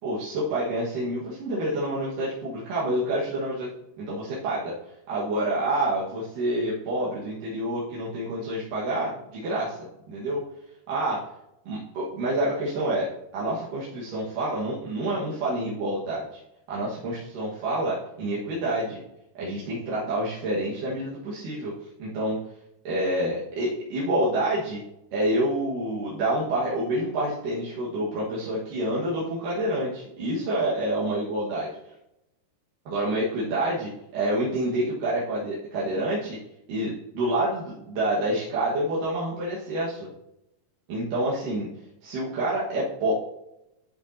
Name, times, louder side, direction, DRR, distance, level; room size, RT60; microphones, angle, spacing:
voice 1, 0.0-3.7 4.0-4.7 5.1-9.8 10.1-10.4 10.9-11.2 11.7-13.1 13.3-16.4 16.7-19.0 19.3-22.4 22.8-24.8 25.1-31.7 32.9-36.4 36.7-40.1 40.9-41.7 42.0-43.1, right 1 dB, 75° right, -7 dB, 3.3 m, -28 dB
12.5 x 8.0 x 2.8 m, 0.86 s
omnidirectional pair, 3.8 m